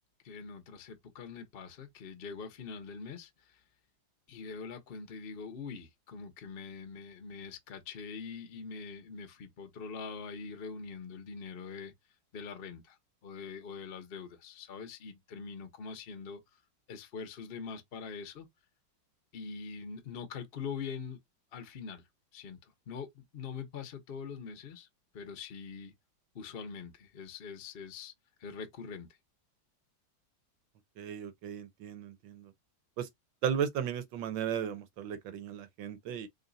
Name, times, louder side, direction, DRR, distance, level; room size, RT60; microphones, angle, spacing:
voice 1, 0.2-3.6 4.3-11.9 12.3-13.0 13.2-16.4 16.9-18.5 19.3-21.2 21.5-22.1 22.3-24.9 25.1-25.9 26.3-28.1 28.4-29.1, left 5 dB, 45° left, 0.7 m, -43 dB
voice 2, 31.0-32.5 33.0-33.1 33.4-36.3, right 8 dB, 80° right, 1.5 m, -35 dB
3.9 x 2.3 x 3.9 m
omnidirectional pair, 2.1 m